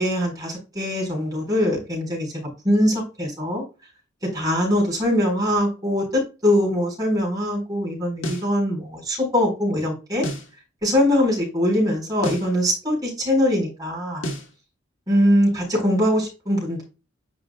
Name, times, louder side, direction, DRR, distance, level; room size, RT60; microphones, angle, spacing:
voice 1, 0.0-3.6 4.3-10.2 10.8-14.2 15.1-16.8, equal, 20° right, -3 dB, 4.3 m, -22 dB
sound 1, 8.2-8.5 10.2-10.5 12.2-12.5 14.2-14.5, equal, 85° left, 1.7 m, -30 dB
10.0 x 5.2 x 2.3 m, 0.31 s
head